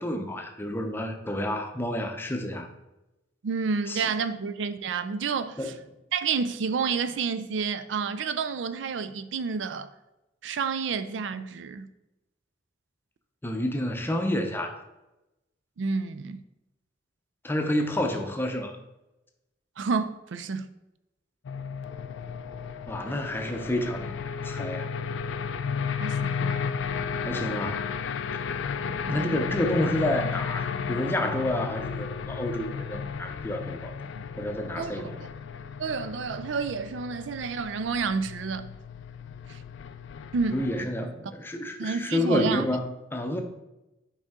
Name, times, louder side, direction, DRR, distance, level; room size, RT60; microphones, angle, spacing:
voice 1, 0.0-2.7 3.9-4.0 5.6-5.8 13.4-14.8 17.4-18.8 22.9-24.9 27.2-27.9 29.1-33.9 34.4-35.2 40.5-43.4, left 1 dB, 10° left, 0.6 m, -29 dB
voice 2, 3.4-5.7 6.1-9.9 10.4-11.9 15.8-16.4 19.8-20.7 26.0-26.7 29.1-29.4 34.1-34.2 34.8-35.1 35.8-38.7 39.5-39.6 40.3-40.6 41.8-42.7, right 5 dB, 75° right, 0.4 m, -30 dB
sound 1, 21.4-40.8, left 6 dB, 80° left, 0.4 m, -34 dB
5.3 x 4.9 x 3.6 m
head